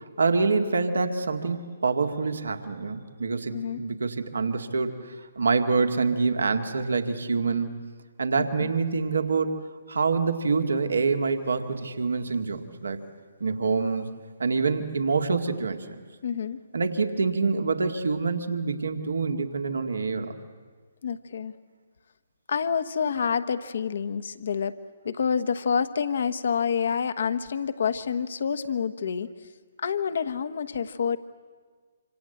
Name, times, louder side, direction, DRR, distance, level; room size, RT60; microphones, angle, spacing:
voice 1, 0.2-5.0 5.4-7.7 8.2-9.5 9.9-13.0 13.4-14.1 14.4-15.8 16.7-20.3, right 4 dB, 75° right, 6 dB, 2.1 m, -26 dB
voice 2, 16.2-16.6 21.0-21.5 22.5-24.8 25.0-29.3 29.8-31.2, left 6 dB, 60° left, 12 dB, 1.3 m, -28 dB
26.5 x 26.0 x 7.9 m, 1.5 s
figure-of-eight pair, 135°, 0 cm